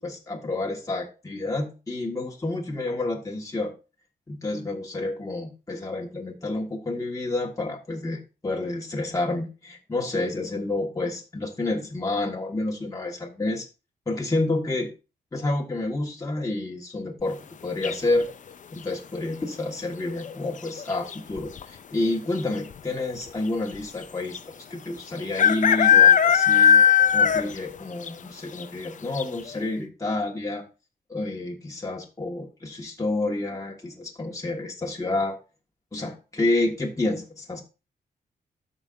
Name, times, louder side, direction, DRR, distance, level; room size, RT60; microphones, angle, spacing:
voice 1, 0.0-3.7 4.3-13.7 14.1-14.9 15.3-18.3 18.7-24.4 24.7-26.8 27.1-30.6 31.1-35.4 35.9-37.6, left 2 dB, 20° left, -1 dB, 1.6 m, -29 dB
sound 1, 17.8-18.3 20.1-20.5 20.8-20.9 21.1-21.6 22.4-22.5 22.7-22.8 24.3-24.4 25.4-27.7 28.0-28.1 28.6-28.7 29.2-29.3, left 8 dB, 50° left, 0.6 m, -17 dB
13.0 x 5.4 x 2.6 m, 0.30 s
cardioid pair, 85°, 16 cm